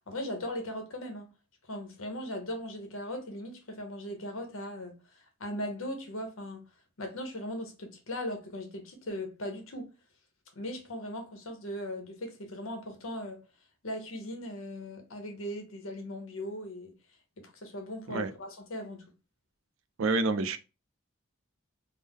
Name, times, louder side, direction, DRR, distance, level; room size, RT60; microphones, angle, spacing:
voice 1, 0.1-1.3 1.7-6.6 7.0-9.9 10.5-13.4 13.8-16.9 17.4-19.0, left 1 dB, 75° left, 0.9 m, -38 dB
voice 2, 20.0-20.6, right 3 dB, 70° right, 0.4 m, -28 dB
3.4 x 2.1 x 3.5 m
head